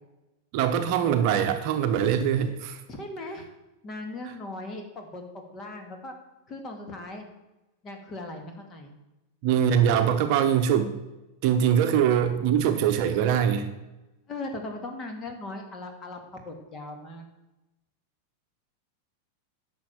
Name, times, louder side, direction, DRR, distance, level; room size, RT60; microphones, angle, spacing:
voice 1, 0.5-2.8 4.2-4.3 9.4-10.9 11.4-13.7, right 9 dB, 45° right, 7 dB, 0.9 m, -23 dB
voice 2, 2.9-3.5 3.8-6.1 6.5-7.2 7.8-8.9 14.3-17.2, left 2 dB, 25° left, 4 dB, 2.2 m, -38 dB
10.5 x 6.3 x 7.4 m, 1.0 s
figure-of-eight pair, 90°, 0 cm